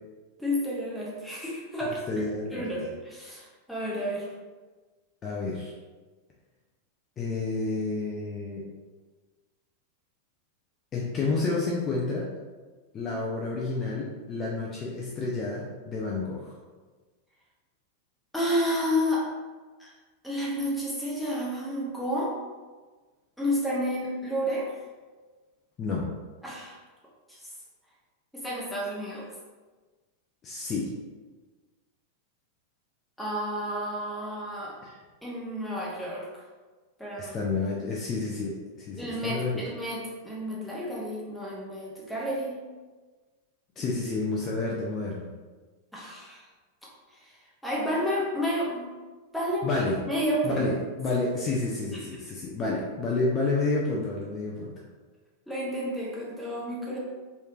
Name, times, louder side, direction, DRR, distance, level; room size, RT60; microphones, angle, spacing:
voice 1, 0.4-2.2 2.5-4.3 18.3-19.3 19.8-19.9 20.2-22.3 23.4-24.7 26.4-26.8 27.3-27.4 28.3-29.3 33.2-34.8 35.2-36.4 37.0-37.3 39.0-42.5 45.9-46.4 46.8-47.3 47.6-48.9 49.3-50.6 51.9-52.0 55.5-57.0, equal, ahead, -5 dB, 0.8 m, -31 dB
voice 2, 2.1-2.7 5.2-5.7 7.2-8.6 10.9-12.3 12.9-16.6 25.8-26.1 30.4-30.9 34.8-35.0 37.2-39.6 43.8-45.3 49.6-50.0 50.4-54.8, left 3 dB, 25° left, -3 dB, 0.5 m, -30 dB
3.1 x 3.1 x 2.4 m, 1.3 s
figure-of-eight pair, 90°, 0 cm